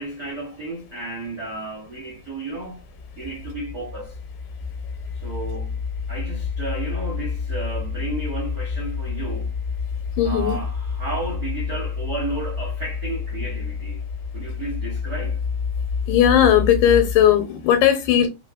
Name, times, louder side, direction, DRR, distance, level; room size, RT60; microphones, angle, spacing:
voice 1, 0.0-2.8 3.2-4.2 5.1-5.8 6.1-9.5 10.2-14.0 14.3-15.4, right 2 dB, 80° right, 0.8 m, -33 dB
sound 1, 2.5-17.4, left 5 dB, ahead, 0.8 m, -29 dB
voice 2, 10.2-10.6 16.1-18.3, left 10 dB, 80° left, 2.2 m, -17 dB
4.8 x 3.0 x 2.3 m
omnidirectional pair, 3.7 m